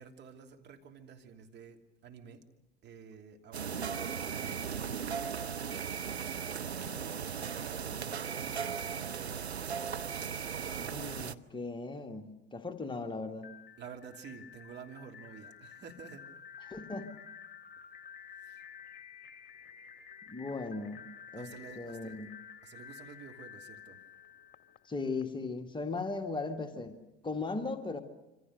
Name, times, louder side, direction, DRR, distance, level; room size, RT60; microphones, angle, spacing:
voice 1, 0.0-2.4 2.8-5.5 6.5-9.4 13.8-16.3 18.4-18.6 21.4-22.2 22.6-24.0, right 6 dB, 35° right, 3 dB, 3.1 m, -51 dB
sound 1, 3.5-11.3, right 7 dB, 85° right, 0.8 m, -37 dB
voice 2, 10.7-13.5 16.6-17.2 20.3-21.0 21.3-22.3 24.8-28.0, left 3 dB, 15° left, 5 dB, 2.0 m, -38 dB
sound 2, 13.4-25.2, left 8 dB, 30° left, 2.3 m, -51 dB
27.0 x 25.5 x 6.7 m, 0.99 s
figure-of-eight pair, 75°, 32 cm